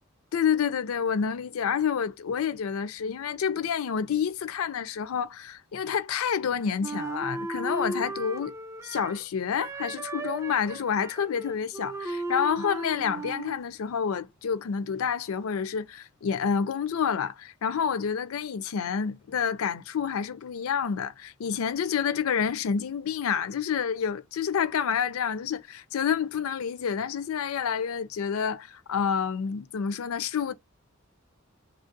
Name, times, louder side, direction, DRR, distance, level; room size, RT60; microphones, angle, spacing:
voice 1, 0.3-8.5 8.8-30.5, left 7 dB, 80° left, 0.4 m, -28 dB
Wind instrument woodwind instrument, 6.8-9.2 9.6-13.6, right 2 dB, 15° right, 0.4 m, -35 dB
3.1 x 2.4 x 2.5 m
head